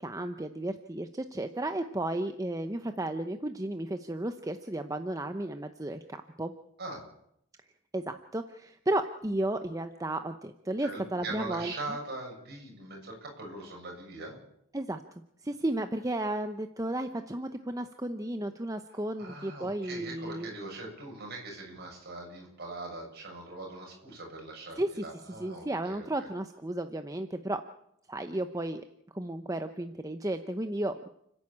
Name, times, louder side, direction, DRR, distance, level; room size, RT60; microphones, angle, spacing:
voice 1, 0.0-6.5 7.9-11.7 14.7-15.0 15.4-20.5 24.8-25.0 25.4-27.6 28.1-28.8 29.1-31.1, right 1 dB, 15° right, 8 dB, 0.7 m, -33 dB
voice 2, 6.8-7.1 10.8-14.4 19.2-26.1, right 2 dB, 50° right, 0 dB, 7.6 m, -41 dB
30.0 x 11.0 x 8.6 m, 0.76 s
head